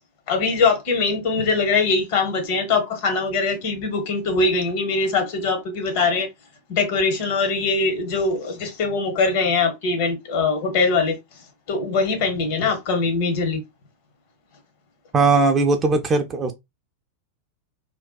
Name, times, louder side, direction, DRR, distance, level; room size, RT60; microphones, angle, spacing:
voice 1, 0.3-6.3 6.7-11.2 11.7-13.6, left 4 dB, 50° left, 0.8 m, -22 dB
voice 2, 15.1-16.5, right 3 dB, 25° right, 0.4 m, -19 dB
2.6 x 2.1 x 2.2 m
figure-of-eight pair, 90°, 0 cm